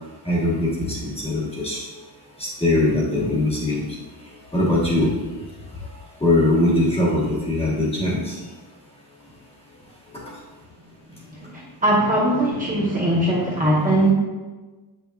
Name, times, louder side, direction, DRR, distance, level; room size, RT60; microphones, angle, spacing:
voice 1, 0.2-1.9 2.4-3.8 4.5-5.1 6.2-8.4, left 1 dB, 15° left, -6 dB, 1.2 m, -21 dB
voice 2, 11.3-14.1, right 1 dB, 20° right, -7 dB, 1.0 m, -20 dB
7.8 x 5.8 x 2.4 m, 1.3 s
cardioid pair, 175°, 46 cm